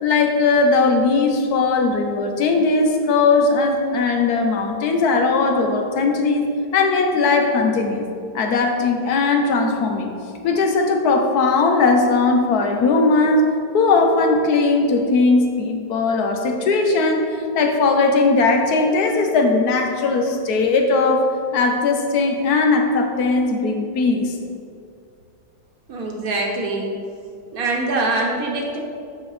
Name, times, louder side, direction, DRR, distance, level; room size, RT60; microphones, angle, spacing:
voice 1, 0.0-8.1 8.3-10.1 10.4-13.4 13.7-21.2 21.5-24.4, left 3 dB, 60° left, 4 dB, 1.1 m, -18 dB
voice 2, 25.9-26.9 27.5-28.8, right 2 dB, 55° right, -1 dB, 1.4 m, -23 dB
8.8 x 6.8 x 3.3 m, 2.4 s
omnidirectional pair, 2.2 m